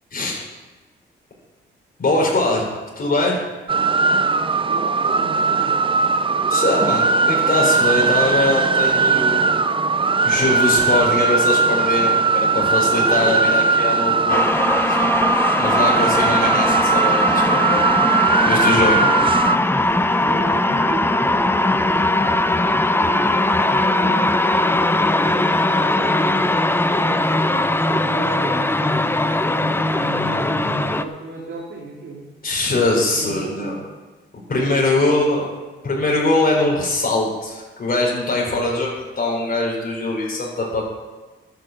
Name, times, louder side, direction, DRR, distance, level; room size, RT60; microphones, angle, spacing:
voice 1, 2.0-3.5 6.5-9.4 10.2-14.5 14.8-15.0 15.6-17.9 18.5-19.0 32.4-33.8 34.5-35.5 35.8-38.9 39.2-40.8, left 2 dB, 50° left, -2 dB, 4.1 m, -21 dB
sound 1, 3.7-19.6, right 4 dB, 25° right, 0.6 m, -19 dB
voice 2, 4.6-5.8 20.2-26.6 26.9-29.0 29.3-32.3 33.1-33.8, right 3 dB, 85° right, -3 dB, 2.5 m, -35 dB
sound 2, 14.3-31.0, left 2 dB, 10° left, 0.7 m, -19 dB
11.5 x 8.8 x 7.7 m, 1.3 s
cardioid pair, 85°, 20 cm